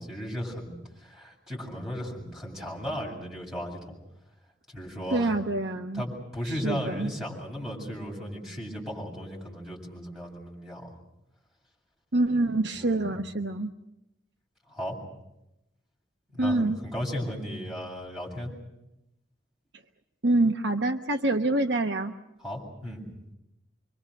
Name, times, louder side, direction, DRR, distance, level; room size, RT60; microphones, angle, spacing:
voice 1, 0.0-4.0 4.7-5.3 5.9-11.0 12.8-13.2 14.7-15.0 16.3-18.5 22.4-23.0, equal, ahead, -2 dB, 7.8 m, -36 dB
voice 2, 5.1-6.0 6.4-7.1 12.1-13.7 16.4-16.8 20.2-22.1, right 2 dB, 60° right, 6 dB, 1.0 m, -26 dB
26.5 x 24.5 x 6.6 m, 0.89 s
head